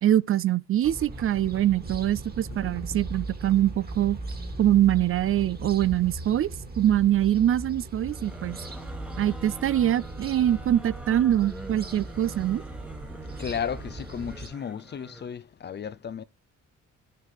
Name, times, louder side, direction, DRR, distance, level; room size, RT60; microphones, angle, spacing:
voice 1, 0.0-4.2 4.6-6.5 6.8-8.6 9.2-12.6, right 12 dB, 45° right, 0.4 m, -23 dB
sound 1, 0.8-14.5, right 2 dB, 30° right, 2.0 m, -38 dB
sound 2, 8.0-15.3, right 2 dB, 5° right, 1.2 m, -44 dB
voice 2, 13.4-16.2, left 7 dB, 35° left, 0.5 m, -34 dB
11.0 x 6.7 x 3.3 m
cardioid pair, 90°, 30 cm